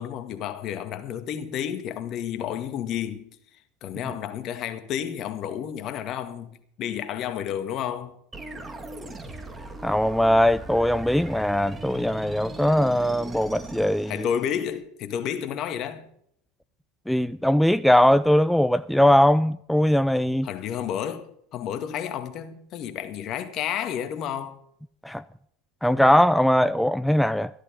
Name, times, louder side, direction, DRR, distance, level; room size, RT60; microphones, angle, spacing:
voice 1, 0.0-3.3 3.8-8.2 14.1-16.1 20.4-24.6, left 9 dB, 50° left, 1.9 m, -31 dB
sound 1, 8.3-14.8, right 2 dB, 20° right, 2.1 m, -39 dB
voice 2, 9.8-14.3 17.1-20.5 25.0-25.2 25.8-27.5, left 1 dB, ahead, 0.4 m, -20 dB
14.0 x 12.0 x 5.2 m
hypercardioid pair, 90°, 0 cm